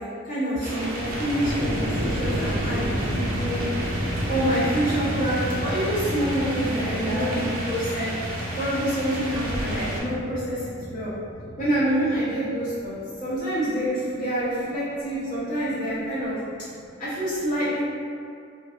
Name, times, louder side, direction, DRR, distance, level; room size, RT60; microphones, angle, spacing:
voice 1, 0.0-4.0 4.3-8.1 8.6-11.1 11.6-16.4 17.0-17.8, equal, 40° left, -12 dB, 0.6 m, -27 dB
sound 1, 0.6-10.0, right 1 dB, 45° right, 0.4 m, -31 dB
sound 2, 0.7-13.0, equal, 65° left, 1.2 m, -32 dB
voice 2, 6.8-7.4 8.0-8.1 10.9-11.6 12.3-12.4 12.8-13.3 13.7-13.8 14.7-14.8 15.1-16.9, left 1 dB, 5° left, -14 dB, 0.9 m, -42 dB
2.5 x 2.2 x 2.4 m, 2.4 s
head